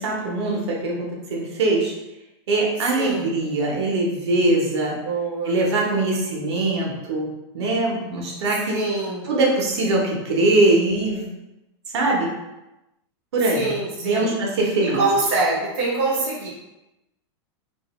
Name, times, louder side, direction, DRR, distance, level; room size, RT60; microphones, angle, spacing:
voice 1, 0.0-1.9 2.5-5.0 5.4-7.3 7.5-8.8 9.2-11.3 11.9-12.3 13.3-13.7 14.0-15.0, right 2 dB, 70° right, -2 dB, 0.8 m, -22 dB
voice 2, 2.9-3.3 5.0-5.6 8.7-9.3 13.5-14.3 14.8-16.5, right 3 dB, 30° right, -6 dB, 0.5 m, -24 dB
2.5 x 2.1 x 3.0 m, 0.96 s
supercardioid pair, 180°, 14 cm